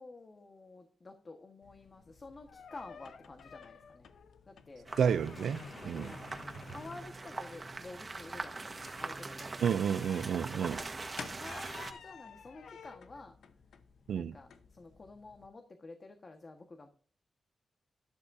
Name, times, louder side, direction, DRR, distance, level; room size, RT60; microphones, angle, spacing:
voice 1, 0.0-4.1 4.5-4.9 5.8-6.3 6.6-9.7 10.5-10.9 11.3-13.4 14.1-16.9, left 3 dB, 40° left, 1.4 m, -50 dB
sound 1, 1.6-15.5, left 6 dB, 85° left, 0.9 m, -53 dB
sound 2, 4.8-11.9, right 3 dB, 35° right, 1.4 m, -43 dB
voice 2, 5.0-6.1 9.6-10.8 14.1-14.4, right 7 dB, 90° right, 0.4 m, -31 dB
12.0 x 11.5 x 2.7 m
cardioid pair, 75°, 0 cm